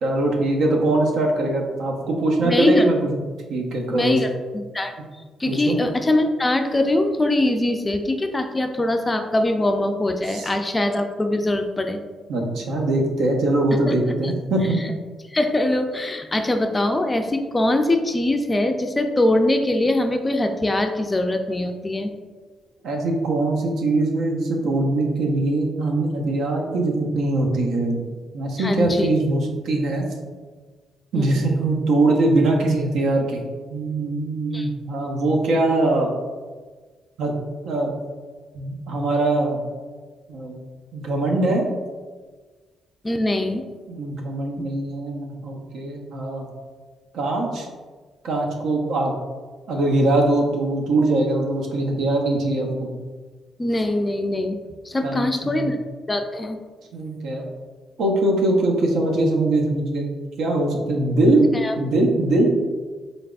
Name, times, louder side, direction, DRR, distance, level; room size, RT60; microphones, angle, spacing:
voice 1, 0.0-3.2 3.5-4.2 5.5-5.8 10.3-10.5 12.3-14.8 22.8-28.0 28.3-30.1 31.1-33.4 33.7-36.1 37.2-37.4 37.6-37.9 38.5-39.6 40.3-40.6 40.9-41.7 43.9-46.5 47.1-47.7 48.2-49.1 49.7-52.9 55.0-55.7 56.9-57.5 58.0-60.1 60.4-61.4 61.8-62.5, right 2 dB, 75° right, 0 dB, 0.7 m, -22 dB
voice 2, 2.4-2.9 3.9-4.9 5.4-12.0 13.9-14.0 14.2-14.3 14.8-14.9 15.3-22.1 28.6-29.1 31.1-31.4 34.5-34.7 43.0-43.6 53.6-54.6 54.8-55.8 56.1-56.6 61.5-61.8, left 1 dB, 20° left, 5 dB, 0.3 m, -22 dB
3.9 x 3.4 x 2.4 m, 1.4 s
cardioid pair, 90°, 0 cm